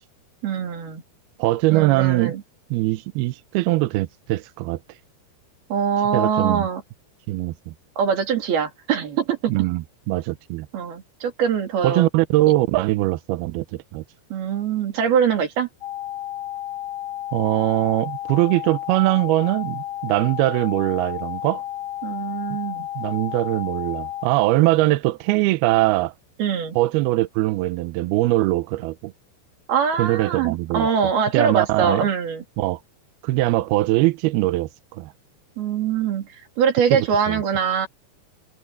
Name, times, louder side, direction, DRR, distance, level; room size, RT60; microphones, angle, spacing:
voice 1, 0.4-1.0 1.7-2.4 5.7-6.8 8.0-9.5 10.7-12.1 14.3-15.7 22.0-22.8 26.4-26.8 29.7-32.4 35.6-37.9, right 7 dB, 60° right, 5.1 m, -23 dB
voice 2, 1.4-2.3 2.7-4.8 6.1-6.7 7.3-7.7 9.5-10.7 11.8-14.0 17.3-21.6 23.0-26.1 26.8-29.1 30.0-30.9 31.3-32.1 32.6-32.8 33.2-35.1 36.9-37.4, right 18 dB, 85° right, 2.3 m, -21 dB
sound 1, 15.8-24.3, left 13 dB, 90° left, 1.1 m, -32 dB
omnidirectional pair, 5.1 m